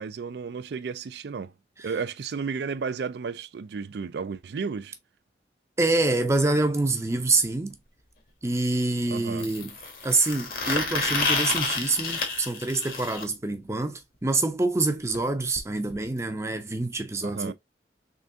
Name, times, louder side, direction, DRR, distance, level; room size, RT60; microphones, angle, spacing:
voice 1, 0.0-1.5 1.8-4.9 9.1-9.5 17.2-17.5, right 5 dB, 65° right, 0.4 m, -33 dB
voice 2, 5.8-7.8 8.4-9.7 10.0-17.5, right 2 dB, 15° right, 0.5 m, -26 dB
sound 1, 7.4-7.5 9.4-13.2 15.1-15.2 15.5-15.6 15.9-16.0 17.0-17.1, left 3 dB, 55° left, 1.1 m, -29 dB
3.7 x 3.4 x 2.6 m
head